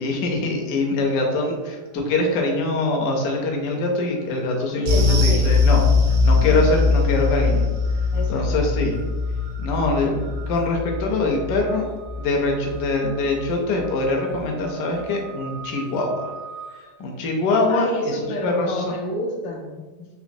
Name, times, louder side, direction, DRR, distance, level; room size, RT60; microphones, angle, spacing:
voice 1, 0.0-5.8 6.1-7.7 8.3-9.0 9.6-11.9 12.2-16.3 16.7-18.9, left 2 dB, 70° left, 1 dB, 1.2 m, -23 dB
sound 1, 1.0-1.6 1.9-18.5, right 6 dB, 70° right, 0.8 m, -46 dB
voice 2, 4.8-5.5 6.3-6.7 8.1-8.8 17.7-20.1, left 1 dB, 90° left, 0 dB, 1.3 m, -30 dB
sound 2, 4.9-13.5 13.8-14.0 14.4-14.5, left 4 dB, 90° right, 1.4 m, -21 dB
4.0 x 2.8 x 2.6 m, 1.3 s
omnidirectional pair, 1.9 m